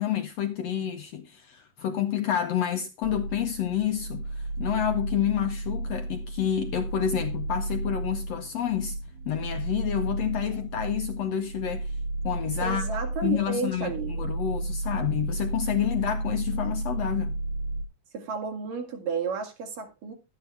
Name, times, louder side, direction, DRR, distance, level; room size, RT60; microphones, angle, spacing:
voice 1, 0.0-9.0 9.3-11.9 12.2-12.8 13.2-17.4, left 10 dB, 70° left, 1.6 m, -29 dB
sound 1, 3.0-17.8, right 2 dB, 60° right, 2.1 m, -33 dB
voice 2, 12.6-14.3 18.1-20.1, right 6 dB, 80° right, 4.1 m, -32 dB
12.0 x 10.0 x 3.3 m
omnidirectional pair, 3.8 m